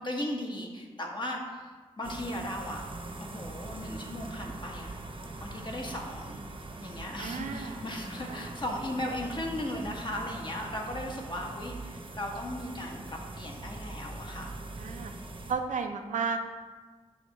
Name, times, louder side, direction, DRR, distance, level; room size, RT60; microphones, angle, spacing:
voice 1, 0.0-1.7 2.0-2.8 3.2-4.9 5.4-6.5 6.8-14.5, left 1 dB, 40° left, 0 dB, 1.3 m, -37 dB
sound 1, 2.0-15.5, right 2 dB, 45° right, 0.9 m, -42 dB
voice 2, 7.2-8.5 14.8-15.1 15.5-16.4, right 5 dB, 80° right, 5 dB, 0.6 m, -34 dB
6.4 x 2.9 x 5.4 m, 1.4 s
cardioid pair, 45°, 13 cm